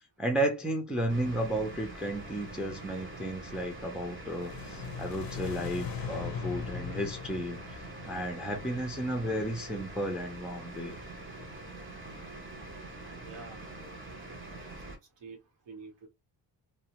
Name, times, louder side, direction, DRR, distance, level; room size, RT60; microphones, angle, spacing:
voice 1, 0.2-7.8 8.0-11.0, right 1 dB, ahead, 0.4 m, -33 dB
sound 1, 1.1-15.0, right 2 dB, 30° right, 0.8 m, -44 dB
sound 2, 4.2-9.3, left 7 dB, 55° left, 0.5 m, -40 dB
voice 2, 13.0-13.8 14.3-14.6 14.8-15.4 15.7-16.1, right 4 dB, 70° right, 1.0 m, -49 dB
2.6 x 2.1 x 2.8 m
wide cardioid pair, 160°, 44 cm